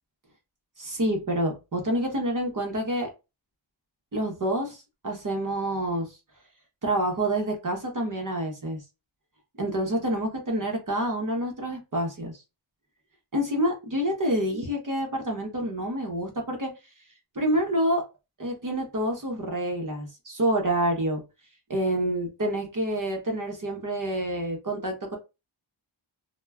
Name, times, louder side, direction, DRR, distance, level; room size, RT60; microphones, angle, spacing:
voice 1, 0.8-3.1 4.1-4.8 5.0-6.2 6.8-8.8 9.6-12.4 13.3-16.7 17.3-18.0 18.4-21.2 21.7-25.2, right 1 dB, 45° right, 0.8 m, -27 dB
2.2 x 2.1 x 3.3 m
wide cardioid pair, 75°, 46 cm